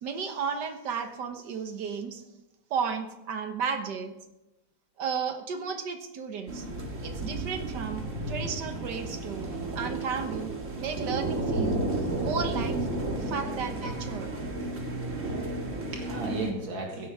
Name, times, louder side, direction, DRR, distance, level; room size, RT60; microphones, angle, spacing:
voice 1, 0.0-2.2 2.7-4.1 5.0-6.7 7.0-12.8 13.2-14.3, right 6 dB, 65° right, 7 dB, 1.7 m, -34 dB
sound 1, 6.5-16.5, right 2 dB, 40° right, 2.1 m, -32 dB
voice 2, 15.2-17.1, right 3 dB, 85° right, 1 dB, 2.6 m, -35 dB
16.0 x 12.0 x 3.6 m, 0.96 s
omnidirectional pair, 2.1 m